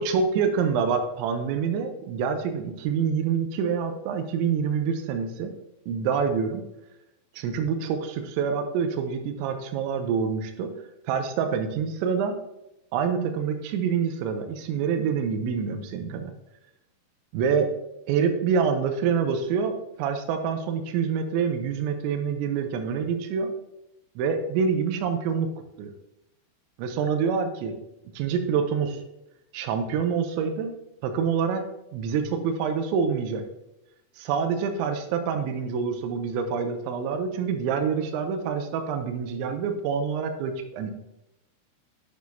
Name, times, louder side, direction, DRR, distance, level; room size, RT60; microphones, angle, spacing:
voice 1, 0.0-5.5 5.9-6.6 7.4-10.7 11.1-12.4 12.9-16.3 17.3-17.7 18.1-23.5 24.2-25.5 25.8-25.9 26.8-27.7 28.1-29.0 29.5-30.8 31.0-31.6 31.9-33.4 34.2-41.1, right 6 dB, 80° right, 6 dB, 2.8 m, -26 dB
8.4 x 6.4 x 2.7 m, 0.89 s
omnidirectional pair, 5.9 m